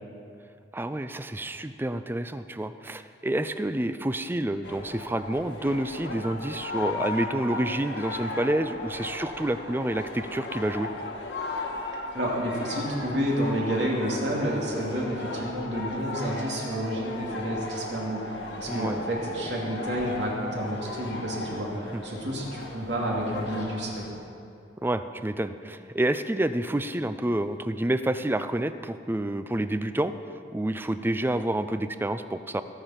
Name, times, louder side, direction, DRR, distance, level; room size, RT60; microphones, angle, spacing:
voice 1, 0.7-10.9 18.7-19.0 21.7-22.0 24.8-30.1 30.5-32.6, right 1 dB, 10° right, 11 dB, 0.4 m, -28 dB
sound 1, 4.6-24.1, left 2 dB, 80° left, 1.6 m, -36 dB
voice 2, 12.1-24.1, equal, 75° right, -3 dB, 2.8 m, -30 dB
19.5 x 7.0 x 5.9 m, 2.5 s
head